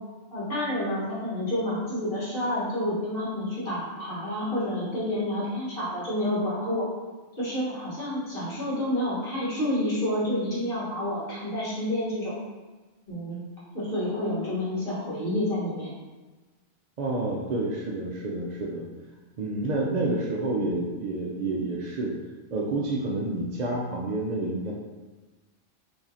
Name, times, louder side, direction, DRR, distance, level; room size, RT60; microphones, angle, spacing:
voice 1, 0.3-6.9 7.4-12.3 13.1-13.4 13.7-15.9, left 1 dB, 45° left, -9 dB, 1.6 m, -29 dB
voice 2, 17.0-18.9 19.4-22.1 22.5-24.7, right 2 dB, 80° right, -3 dB, 0.3 m, -29 dB
4.8 x 2.7 x 2.7 m, 1.2 s
omnidirectional pair, 1.3 m